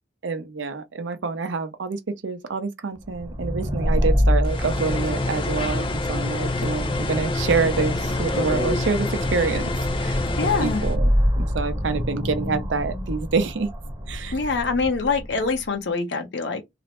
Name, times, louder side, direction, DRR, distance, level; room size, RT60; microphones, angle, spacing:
voice 1, 0.2-9.7 10.0-10.2 10.6-11.1 11.4-13.7 14.1-14.3, right 4 dB, 85° right, 0.6 m, -27 dB
sound 1, 3.0-15.6, equal, 20° right, 0.8 m, -27 dB
sound 2, 4.4-11.0, left 2 dB, 25° left, 0.5 m, -26 dB
voice 2, 10.4-10.8 14.3-16.6, left 4 dB, 70° left, 0.7 m, -24 dB
2.5 x 2.1 x 2.9 m
head